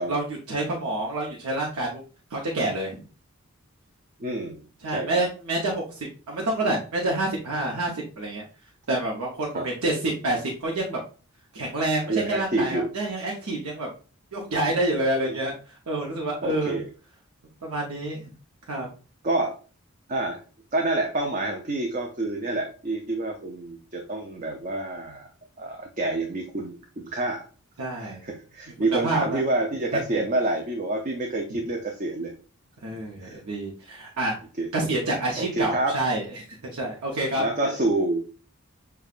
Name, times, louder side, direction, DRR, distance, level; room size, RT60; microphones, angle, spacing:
voice 1, 0.0-2.0 2.3-3.0 4.8-8.4 8.9-11.0 11.5-13.9 14.3-16.8 17.6-18.3 18.7-18.9 27.8-28.2 29.0-29.4 29.9-30.0 32.8-34.3 34.7-37.7, right 2 dB, 85° right, -1 dB, 0.8 m, -28 dB
voice 2, 4.2-5.2 9.5-9.6 12.1-12.9 15.2-15.4 16.4-16.9 19.2-19.5 20.1-20.4 20.7-25.3 25.6-27.5 28.0-32.3 33.2-33.4 34.6-34.7 35.4-36.0 37.4-38.2, right 2 dB, 35° right, 1 dB, 0.5 m, -28 dB
6.6 x 2.3 x 2.4 m, 0.36 s
head